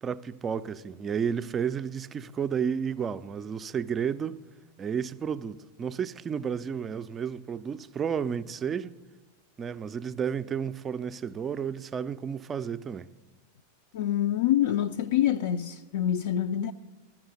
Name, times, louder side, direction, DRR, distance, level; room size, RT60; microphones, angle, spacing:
voice 1, 0.0-4.4 4.8-9.0 9.6-13.1, right 7 dB, 20° right, 0.4 m, -32 dB
voice 2, 13.9-16.7, left 11 dB, 55° left, 0.3 m, -26 dB
13.0 x 5.9 x 7.8 m
figure-of-eight pair, 90°, 0 cm